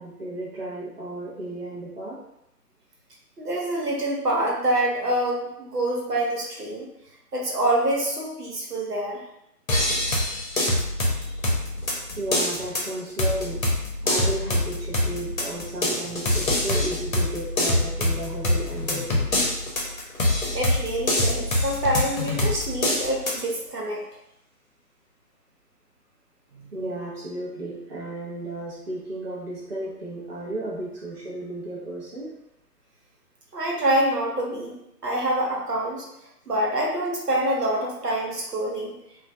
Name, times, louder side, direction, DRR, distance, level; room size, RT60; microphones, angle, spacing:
voice 1, 0.0-2.2 11.1-11.4 12.2-13.6 14.0-19.3 26.7-32.3, right 1 dB, 40° right, -6 dB, 0.5 m, -34 dB
voice 2, 3.4-6.9 7.3-9.2 20.5-24.0 26.5-26.7 33.5-34.8 35.0-36.1 36.5-38.9, right 1 dB, 75° right, -2 dB, 0.9 m, -26 dB
sound 1, 9.7-23.4, left 1 dB, 55° left, 0.8 m, -25 dB
2.3 x 2.2 x 2.6 m, 0.82 s
figure-of-eight pair, 140°, 48 cm